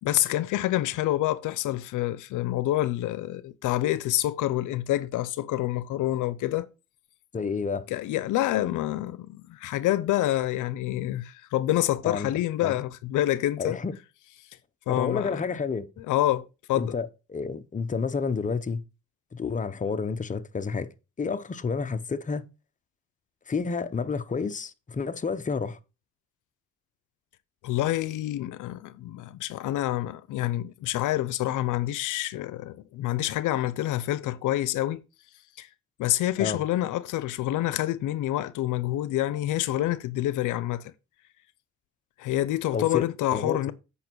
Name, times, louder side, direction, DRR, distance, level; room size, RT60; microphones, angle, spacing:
voice 1, 0.0-6.7 7.9-13.8 14.9-15.4 16.0-16.9 27.6-35.0 35.6-35.7 36.0-40.9 42.2-43.7, left 14 dB, 85° left, 0.6 m, -27 dB
voice 2, 7.3-7.9 12.0-12.3 12.6-12.8 13.6-13.9 14.9-15.9 16.7-18.8 19.3-20.9 21.2-22.4 23.5-25.8 36.4-36.6 42.7-43.0 43.3-43.7, left 5 dB, 25° left, 0.8 m, -30 dB
8.5 x 5.5 x 4.6 m
cardioid pair, 90°, 30 cm